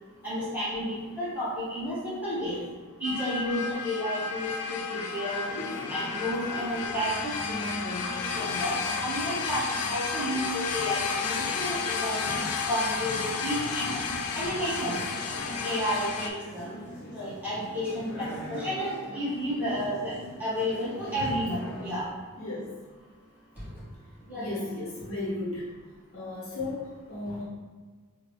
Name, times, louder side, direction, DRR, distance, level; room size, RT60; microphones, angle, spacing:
voice 1, 0.2-2.6 3.0-5.4 5.9-14.0 14.3-15.0 15.6-16.7 17.1-20.1 20.4-22.1 23.6-23.7 24.3-24.6, equal, 10° right, -11 dB, 1.5 m, -32 dB
sound 1, 3.0-16.3, left 5 dB, 90° left, 0.4 m, -32 dB
sound 2, 5.4-22.1, equal, 50° left, 0.6 m, -41 dB
voice 2, 22.4-22.7 24.3-25.7 26.1-27.4, left 2 dB, 65° left, -7 dB, 1.1 m, -34 dB
3.8 x 2.3 x 3.1 m, 1.5 s
head